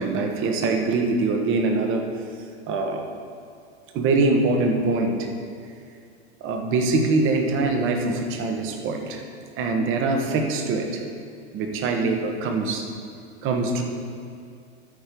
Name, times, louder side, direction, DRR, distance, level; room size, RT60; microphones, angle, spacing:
voice 1, 0.0-2.0 2.7-3.0 3.9-5.3 6.4-9.2 9.6-11.0 11.5-12.8 13.4-13.8, right 3 dB, 40° right, 4 dB, 1.2 m, -23 dB
13.0 x 4.4 x 5.2 m, 2.3 s
hypercardioid pair, 110°, 33 cm